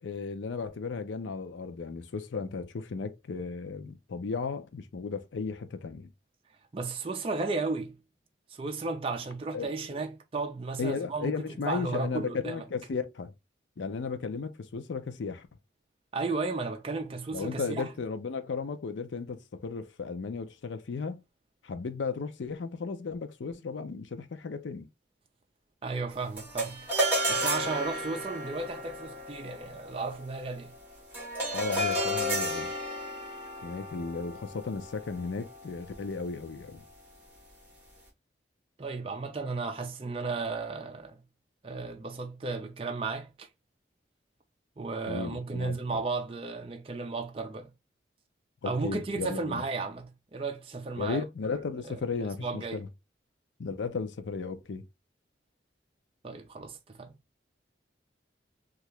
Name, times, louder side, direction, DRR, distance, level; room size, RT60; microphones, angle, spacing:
voice 1, 0.0-6.1 9.5-10.0 10.8-13.3 13.8-15.5 17.3-21.2 21.6-24.9 31.5-32.7 33.6-36.8 45.1-46.0 48.6-49.6 51.0-52.9 53.6-54.8, left 4 dB, 80° left, 0.5 m, -35 dB
voice 2, 6.7-8.0 8.5-12.6 16.1-17.9 25.8-26.9 27.3-30.7 38.8-41.2 41.6-43.5 44.8-47.7 48.6-51.2 51.5-51.6 51.8-52.0 52.4-52.8 56.2-57.1, right 3 dB, 30° right, 0.4 m, -34 dB
sound 1, 26.4-35.9, equal, 10° right, 1.2 m, -33 dB
2.8 x 2.4 x 3.1 m
head